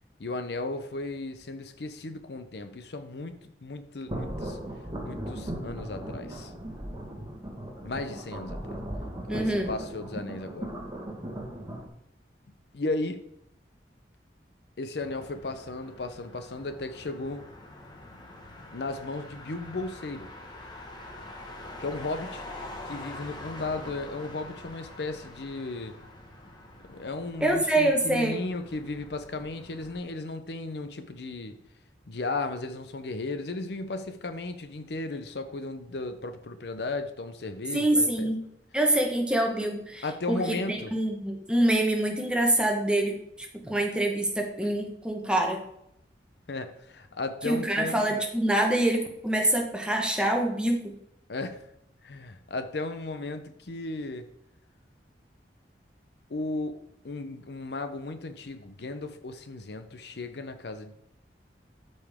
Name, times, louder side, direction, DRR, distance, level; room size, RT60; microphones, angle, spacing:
voice 1, 0.2-4.6 5.0-6.5 7.8-8.8 9.3-10.7 12.7-13.2 14.8-17.4 18.7-20.3 21.8-22.4 22.9-25.9 26.9-31.5 32.1-38.3 40.0-40.9 46.5-48.2 51.3-51.6 52.0-54.3 56.3-56.8 57.0-60.9, left 2 dB, 65° left, 9 dB, 0.7 m, -35 dB
sound 1, 4.1-11.9, right 1 dB, 20° right, 1.6 m, -37 dB
voice 2, 9.3-9.7 27.4-28.3 37.7-38.4 38.7-45.6 47.4-50.9, right 1 dB, 5° right, 1 dB, 1.3 m, -25 dB
Motor vehicle (road), 15.0-30.0, left 2 dB, 25° left, 1.3 m, -45 dB
13.0 x 5.4 x 3.6 m, 0.76 s
head